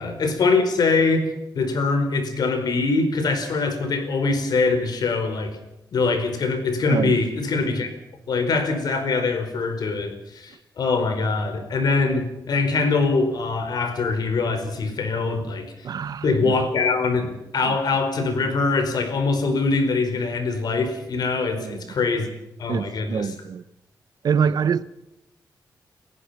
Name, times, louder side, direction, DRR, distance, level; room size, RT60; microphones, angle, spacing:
voice 1, 0.0-5.6 5.9-7.9 8.3-15.7 16.2-22.3 22.6-23.3, left 3 dB, 65° left, 4.9 m, -23 dB
voice 2, 15.8-16.5 17.6-17.8 21.5-21.9 22.7-23.6 24.2-24.8, right 7 dB, 60° right, 0.9 m, -25 dB
29.5 x 15.5 x 5.9 m
wide cardioid pair, 125°, 7 cm